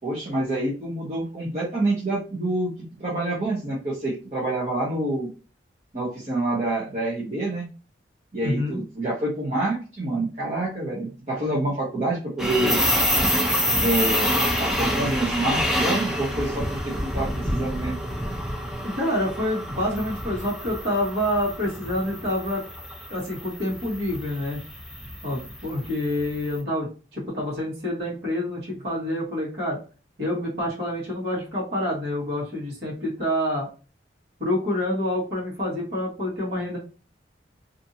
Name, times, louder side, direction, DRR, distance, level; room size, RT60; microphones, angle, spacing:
voice 1, 0.0-2.7 3.0-5.3 5.9-7.7 8.3-12.8 13.8-17.9, right 2 dB, 40° right, -7 dB, 0.8 m, -27 dB
voice 2, 8.4-8.8 18.8-22.6 23.1-24.6 25.2-29.8 30.2-33.7 34.4-36.8, left 1 dB, 60° right, -6 dB, 1.3 m, -27 dB
sound 1, 12.4-26.4, equal, ahead, 0.4 m, -27 dB
2.6 x 2.6 x 2.6 m, 0.35 s
head